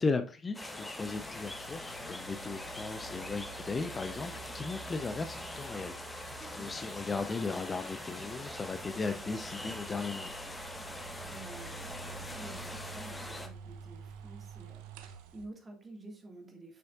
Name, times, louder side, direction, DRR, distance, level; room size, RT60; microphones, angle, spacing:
voice 1, 0.0-6.3 6.5-10.3, left 4 dB, 25° left, 0.5 m, -36 dB
sound 1, 0.5-13.5, left 1 dB, 10° left, 1.1 m, -43 dB
sound 2, 1.1-15.5, right 7 dB, 65° right, 0.8 m, -50 dB
voice 2, 6.4-6.7 11.3-14.9 15.3-16.8, right 2 dB, 25° right, 1.8 m, -50 dB
6.8 x 6.4 x 2.5 m
figure-of-eight pair, 55°, 0 cm